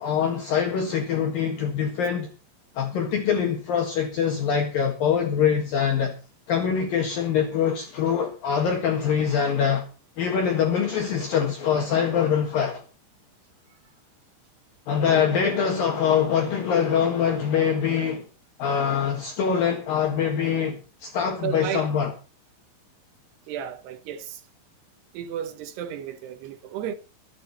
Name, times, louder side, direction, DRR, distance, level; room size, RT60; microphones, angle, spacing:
voice 1, 0.0-2.3 2.8-6.1 6.5-9.9 10.2-12.8 14.9-18.3 18.6-22.1, left 7 dB, 60° left, 3.1 m, -24 dB
voice 2, 21.4-21.9 23.5-24.4 25.1-26.9, right 9 dB, 70° right, 3.0 m, -33 dB
24.0 x 8.6 x 4.2 m
omnidirectional pair, 5.2 m